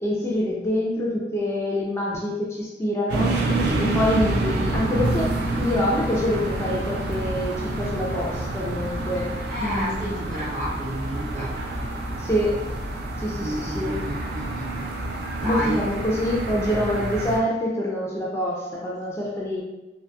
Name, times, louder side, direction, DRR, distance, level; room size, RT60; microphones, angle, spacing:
voice 1, 0.0-3.4 3.8-10.4 12.2-12.6 13.2-14.0 15.4-19.6, left 1 dB, 15° left, -4 dB, 0.4 m, -26 dB
sound 1, 3.1-17.4, right 2 dB, 65° right, 0.4 m, -28 dB
voice 2, 3.6-4.1 9.5-11.5 13.4-14.9 15.4-15.8, equal, 45° right, -6 dB, 0.9 m, -31 dB
2.7 x 2.3 x 2.2 m, 1.0 s
head